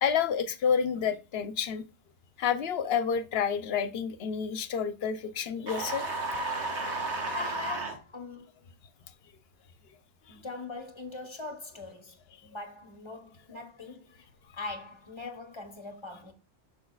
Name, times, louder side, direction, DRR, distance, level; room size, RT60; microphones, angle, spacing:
voice 1, 0.0-1.8 2.4-6.0, left 7 dB, 65° left, 0.8 m, -29 dB
sound 1, 5.7-8.0, right 2 dB, 85° right, 1.6 m, -33 dB
voice 2, 7.3-8.7 10.3-16.3, left 3 dB, 25° left, 1.0 m, -41 dB
6.7 x 6.2 x 2.3 m
omnidirectional pair, 1.1 m